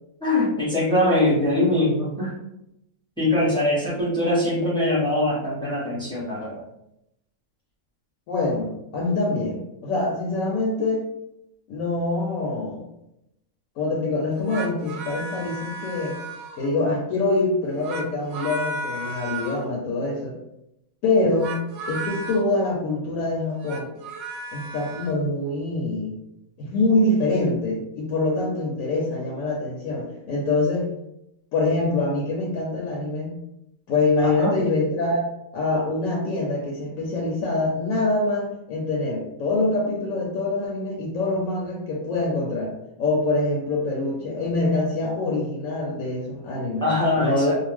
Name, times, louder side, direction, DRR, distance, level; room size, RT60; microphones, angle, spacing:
voice 1, 0.2-2.3 3.2-6.6 34.2-34.5 46.8-47.5, left 1 dB, 5° left, -8 dB, 0.5 m, -22 dB
voice 2, 8.3-11.0 11.7-12.8 13.8-16.2 16.6-20.4 21.0-23.9 24.5-26.2 26.6-30.9 31.5-33.4 33.9-35.2 35.5-46.9 47.2-47.5, left 2 dB, 70° left, -2 dB, 0.9 m, -25 dB
sound 1, 14.3-16.8 17.6-19.7 21.3-22.4 23.5-25.2, right 2 dB, 75° right, 1.0 m, -34 dB
2.5 x 2.1 x 3.3 m, 0.83 s
omnidirectional pair, 1.5 m